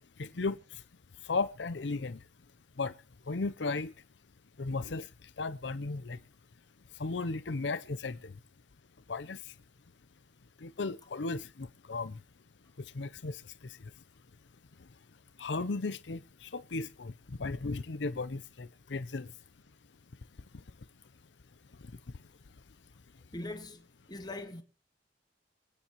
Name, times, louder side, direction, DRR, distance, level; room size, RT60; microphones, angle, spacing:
voice 1, 0.2-0.6 1.3-2.2 2.8-2.9 3.3-3.9 4.6-5.1 5.4-6.2 7.0-8.2 9.1-9.4 10.6-12.2 13.0-13.4 15.4-17.1 17.4-19.3, left 3 dB, 75° left, 0.7 m, -35 dB
voice 2, 23.3-24.6, left 2 dB, 25° left, 1.8 m, -42 dB
24.5 x 9.9 x 3.1 m
head